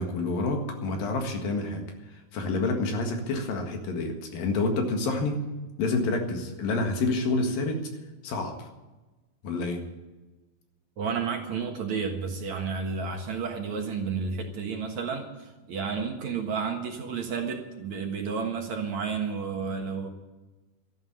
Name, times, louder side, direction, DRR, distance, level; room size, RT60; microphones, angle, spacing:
voice 1, 0.0-1.9 2.3-5.4 5.8-7.9 8.2-8.7 9.4-9.8, left 3 dB, 70° left, 4 dB, 3.5 m, -28 dB
voice 2, 11.0-20.1, right 5 dB, 55° right, 3 dB, 2.5 m, -31 dB
13.5 x 11.5 x 9.0 m, 1.2 s
omnidirectional pair, 4.4 m